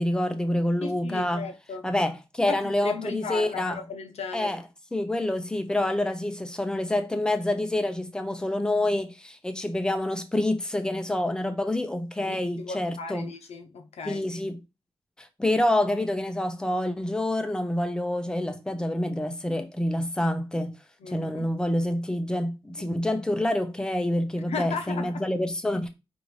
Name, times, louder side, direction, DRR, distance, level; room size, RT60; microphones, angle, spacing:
voice 1, 0.0-1.5 1.8-3.8 4.3-4.6 4.9-13.3 14.0-14.6 15.2-20.8 21.1-25.9, left 1 dB, 5° left, 0.5 m, -27 dB
voice 2, 0.8-1.9 2.5-4.6 12.2-14.4 21.0-21.5 22.8-22.9 24.5-25.2, left 5 dB, 90° left, 0.7 m, -36 dB
5.0 x 2.5 x 3.1 m
wide cardioid pair, 180°, 10 cm